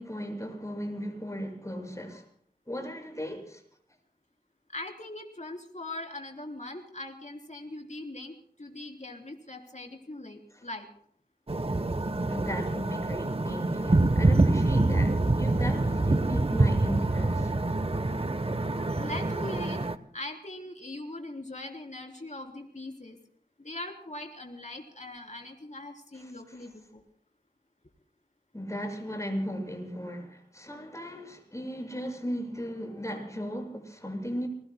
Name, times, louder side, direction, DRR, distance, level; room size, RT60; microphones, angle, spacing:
voice 1, 0.0-2.2 2.7-3.6 10.5-10.6 12.2-17.5 26.1-26.7 28.5-34.5, equal, 20° left, 6.3 m, -36 dB
voice 2, 4.7-10.9 19.0-19.8 20.1-23.2 23.6-27.0, left 2 dB, 45° left, 3.5 m, -41 dB
sound 1, 11.5-20.0, right 2 dB, 35° right, 1.0 m, -26 dB
29.0 x 22.0 x 2.2 m
wide cardioid pair, 40°, 17 cm